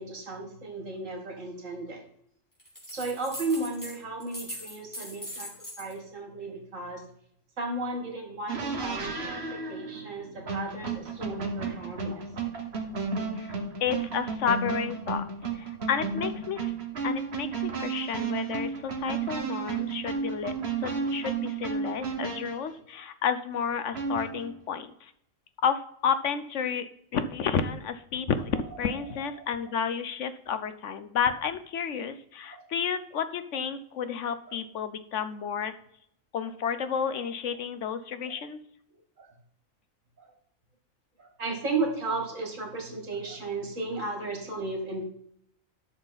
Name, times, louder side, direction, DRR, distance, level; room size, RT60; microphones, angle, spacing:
voice 1, 0.0-2.0 2.9-5.5 5.8-7.0 7.6-12.2 28.9-29.0 29.4-29.5 32.5-32.7 34.5-34.6 36.8-36.9 38.3-38.4 39.2-39.3 40.2-40.3 41.2-45.0, right 3 dB, 70° right, 3 dB, 2.5 m, -34 dB
sound 1, 2.6-5.9, equal, 15° left, 2.8 m, -40 dB
sound 2, 8.5-22.7 23.9-24.6, right 5 dB, 50° right, 1.7 m, -33 dB
voice 2, 13.8-15.2 15.5-16.7 17.0-20.5 20.8-25.1 25.6-26.9 27.1-35.7 36.3-38.6, left 7 dB, 70° left, 11 dB, 1.0 m, -31 dB
11.5 x 6.4 x 4.0 m, 0.69 s
omnidirectional pair, 1.4 m